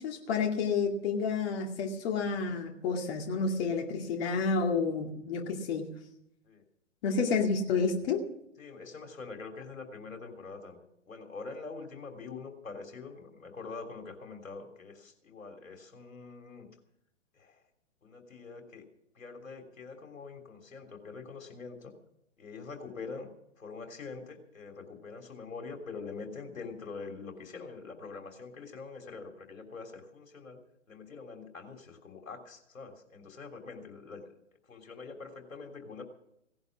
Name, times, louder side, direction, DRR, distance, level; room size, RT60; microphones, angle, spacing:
voice 1, 0.0-5.9 7.0-8.2, left 5 dB, 50° left, 1 dB, 2.4 m, -30 dB
voice 2, 8.6-16.7 17.3-17.6 18.0-18.8 19.1-21.9 22.4-23.3 23.6-30.6 30.9-34.2 34.7-36.0, left 4 dB, 90° left, 4 dB, 3.4 m, -44 dB
17.5 x 11.0 x 6.1 m, 0.78 s
hypercardioid pair, 130°, 39 cm